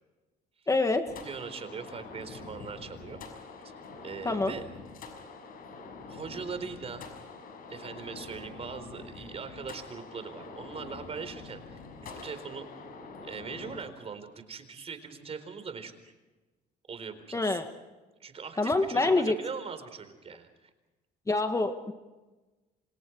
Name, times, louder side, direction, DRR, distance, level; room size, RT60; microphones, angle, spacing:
voice 1, 0.7-1.1 4.2-4.5 17.3-17.7 18.6-19.4 21.3-21.9, left 2 dB, 20° left, 6 dB, 1.8 m, -26 dB
sound 1, 1.0-13.8, left 4 dB, 60° left, 6.4 m, -45 dB
voice 2, 1.2-3.2 3.6-3.7 4.0-4.6 6.1-7.1 7.7-12.8 13.2-16.1 16.9-17.6 18.2-20.7, right 5 dB, 35° right, 9 dB, 4.3 m, -41 dB
28.5 x 26.5 x 4.7 m, 1.1 s
cardioid pair, 110°, 17 cm